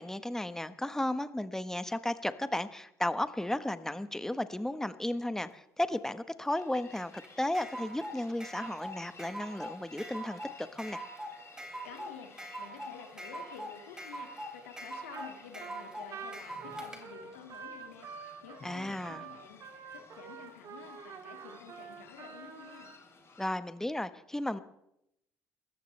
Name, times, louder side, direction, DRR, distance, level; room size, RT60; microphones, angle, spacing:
voice 1, 0.0-11.0 18.6-19.2 23.4-24.6, left 1 dB, 5° left, 12 dB, 1.2 m, -34 dB
sound 1, 6.5-23.5, left 4 dB, 40° left, 7.0 m, -56 dB
sound 2, 6.9-17.0, right 1 dB, 10° right, 3.0 m, -43 dB
voice 2, 11.6-22.9, left 8 dB, 90° left, 5 dB, 2.2 m, -51 dB
Trumpet, 15.1-15.3 15.6-23.0, right 6 dB, 55° right, 2.8 m, -47 dB
28.0 x 14.5 x 3.4 m, 0.81 s
hypercardioid pair, 65°, 7 cm